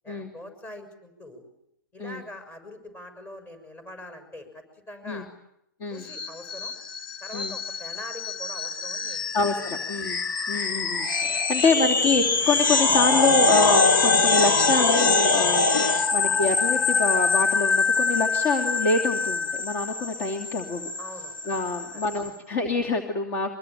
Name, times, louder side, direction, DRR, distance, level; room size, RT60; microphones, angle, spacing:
voice 1, 0.0-1.4 1.9-5.3 5.9-6.7 7.2-9.7 11.6-11.8 15.9-16.1 21.0-21.5 21.9-22.0, left 1 dB, 20° left, 8 dB, 6.7 m, -43 dB
sound 1, 6.1-22.3, left 3 dB, 70° left, 2.3 m, -24 dB
voice 2, 9.3-10.2 10.5-20.9 21.4-23.5, left 4 dB, 40° left, 4 dB, 2.9 m, -26 dB
25.0 x 23.5 x 9.1 m, 0.79 s
hypercardioid pair, 120°, 12 cm